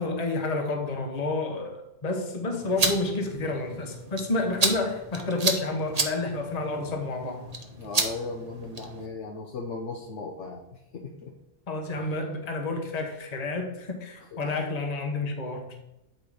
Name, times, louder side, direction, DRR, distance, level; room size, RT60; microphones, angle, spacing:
voice 1, 0.0-7.5 11.7-15.8, left 2 dB, 35° left, 1.1 m, -30 dB
sound 1, 2.5-9.1, right 3 dB, 35° right, 0.9 m, -31 dB
voice 2, 7.8-11.3 11.9-12.1 14.3-14.6, left 3 dB, 75° left, 1.3 m, -37 dB
8.7 x 4.5 x 4.9 m
omnidirectional pair, 1.2 m